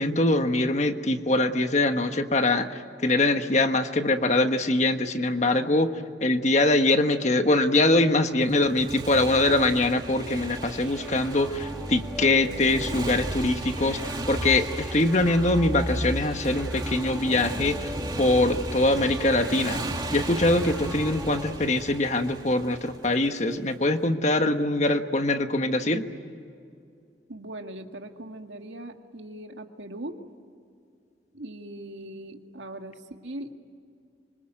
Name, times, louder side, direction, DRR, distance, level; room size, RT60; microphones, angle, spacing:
voice 1, 0.0-5.9 6.2-17.9 18.2-19.8 20.1-26.1, left 2 dB, 40° left, 7 dB, 1.4 m, -23 dB
Motorcycle, 8.4-23.6, right 2 dB, 25° right, 2.1 m, -37 dB
sound 1, 10.6-21.6, equal, 5° right, 2.1 m, -36 dB
voice 2, 27.3-30.1 31.3-33.5, right 1 dB, 90° right, 5 dB, 2.0 m, -40 dB
26.0 x 25.5 x 9.1 m, 2.4 s
head